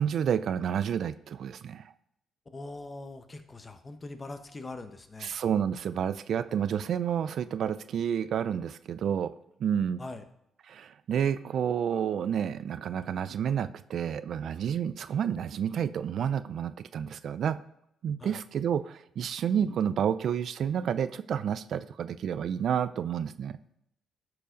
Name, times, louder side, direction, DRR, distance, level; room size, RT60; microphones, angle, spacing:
voice 1, 0.0-1.8 5.2-9.3 9.6-10.0 10.7-17.6 18.0-23.6, right 8 dB, 65° right, 14 dB, 0.4 m, -30 dB
voice 2, 2.5-5.3 10.0-10.2 18.2-18.4, left 2 dB, 25° left, 8 dB, 1.0 m, -42 dB
12.5 x 4.8 x 5.2 m, 0.77 s
cardioid pair, 90°, 0 cm